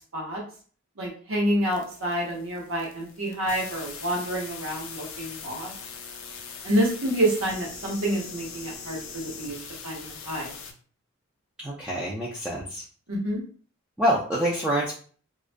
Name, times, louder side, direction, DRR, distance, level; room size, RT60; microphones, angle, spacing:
voice 1, 1.0-5.7 6.6-9.6 9.8-10.5 13.1-13.4, right 1 dB, 70° right, -2 dB, 0.9 m, -28 dB
sound 1, 1.6-10.7, left 5 dB, 65° left, 0.4 m, -41 dB
voice 2, 11.6-12.8 14.0-14.9, equal, 5° right, -5 dB, 0.3 m, -26 dB
2.3 x 2.2 x 2.4 m, 0.43 s
head